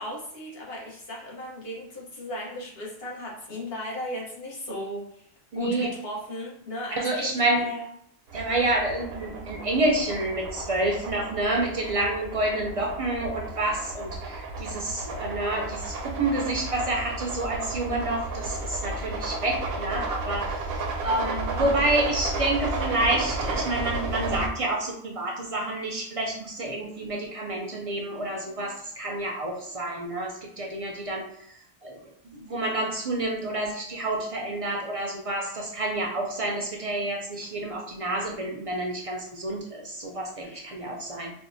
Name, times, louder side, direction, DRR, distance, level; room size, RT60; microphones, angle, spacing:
voice 1, 0.0-5.2 5.5-7.9 40.4-40.6, left 1 dB, 65° left, -3 dB, 1.2 m, -36 dB
voice 2, 5.5-5.9 6.9-7.7 8.3-31.3 31.8-32.0 32.2-41.3, right 2 dB, 50° right, 0 dB, 0.4 m, -28 dB
sound 1, 8.3-24.5, right 3 dB, 70° right, 0.8 m, -33 dB
4.4 x 2.1 x 2.6 m, 0.69 s
omnidirectional pair, 1.1 m